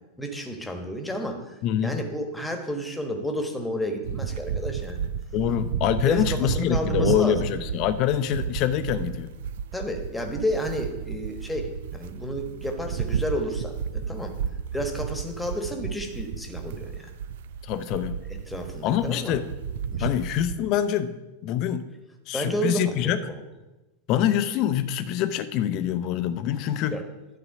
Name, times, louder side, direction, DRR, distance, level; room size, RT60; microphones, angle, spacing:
voice 1, 0.2-5.1 6.0-7.5 9.7-14.3 14.7-17.1 18.5-19.3 19.9-20.1 22.3-23.4 26.9-27.0, equal, 5° left, 3 dB, 1.2 m, -31 dB
voice 2, 1.6-2.0 5.3-9.3 17.6-18.2 18.8-19.5 20.0-21.8 22.3-23.2 24.1-27.0, left 10 dB, 40° left, 12 dB, 0.6 m, -25 dB
sound 1, 4.0-20.6, right 7 dB, 55° right, 0.4 m, -32 dB
11.5 x 3.9 x 5.9 m, 1.1 s
figure-of-eight pair, 90°, 0 cm